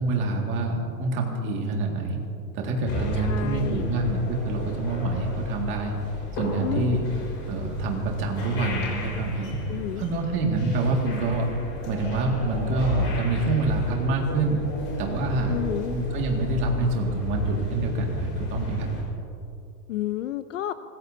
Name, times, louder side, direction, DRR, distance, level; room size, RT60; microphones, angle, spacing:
voice 1, 0.0-2.2 2.5-5.9 6.3-7.0 7.5-9.5 10.0-11.5 11.8-14.6 15.0-15.5 15.9-18.9, right 2 dB, 25° right, 1 dB, 2.0 m, -26 dB
sound 1, 2.9-19.0, left 1 dB, 25° left, 4.4 m, -33 dB
voice 2, 3.1-3.9 6.6-7.0 9.7-10.1 15.5-16.0 19.9-20.7, left 13 dB, 50° left, 12 dB, 0.5 m, -30 dB
25.5 x 20.0 x 2.7 m, 2.7 s
supercardioid pair, 170°, 49 cm